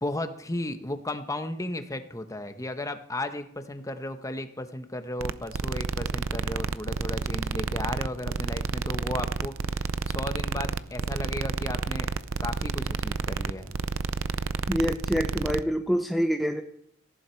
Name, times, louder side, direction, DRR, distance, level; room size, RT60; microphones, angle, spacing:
voice 1, 0.0-12.1 12.4-13.8, left 1 dB, 15° left, 8 dB, 1.1 m, -35 dB
sound 1, 5.2-15.6, right 4 dB, 90° right, 0.6 m, -30 dB
voice 2, 14.7-16.6, equal, ahead, 4 dB, 0.7 m, -26 dB
18.0 x 15.0 x 4.6 m, 0.68 s
head